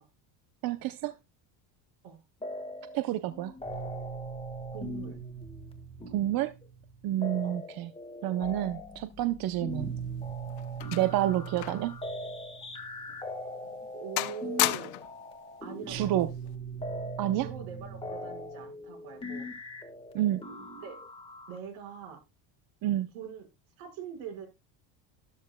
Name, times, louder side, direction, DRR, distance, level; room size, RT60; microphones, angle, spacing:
voice 1, 0.6-1.1 2.9-3.5 6.1-6.5 7.0-7.9 8.2-9.9 10.9-12.0 15.9-16.3 17.2-17.5 20.1-20.4 22.8-23.1, right 13 dB, 45° right, 11 dB, 0.7 m, -29 dB
sound 1, 2.4-3.0 3.3-21.6, right 1 dB, 10° left, 1.5 m, -40 dB
voice 2, 4.7-5.2 7.4-7.6 11.0-11.1 13.9-14.9 15.6-16.3 17.3-19.5 20.8-21.0 21.5-22.2 23.1-23.5 23.8-24.5, right 8 dB, 70° right, 3 dB, 5.1 m, -42 dB
sound 2, 9.9-12.0 12.3-12.4 13.1-13.2 13.6-13.9 14.2-15.2 16.2-16.5, left 19 dB, 75° left, 0.9 m, -33 dB
13.0 x 12.5 x 2.2 m, 0.24 s
cardioid pair, 145°, 49 cm